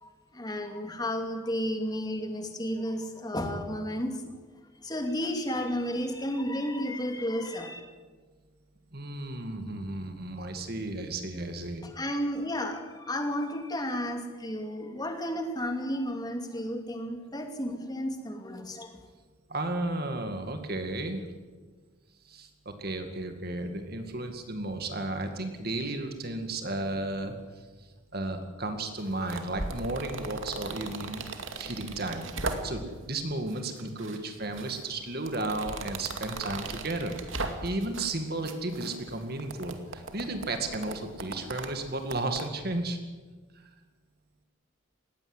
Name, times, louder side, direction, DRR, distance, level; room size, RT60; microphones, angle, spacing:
voice 1, 0.0-4.3 4.8-7.8 11.8-19.0, equal, 20° left, 5 dB, 2.6 m, -32 dB
voice 2, 8.9-11.9 19.5-21.2 22.2-27.9 28.1-31.3 31.5-37.3 37.6-43.0 43.6-43.7, right 2 dB, 50° right, 6 dB, 2.1 m, -34 dB
sound 1, 29.0-33.0 33.5-34.2 34.5-38.2 38.5-42.5, right 3 dB, 75° right, 2.4 m, -38 dB
19.5 x 16.0 x 9.8 m, 1.4 s
head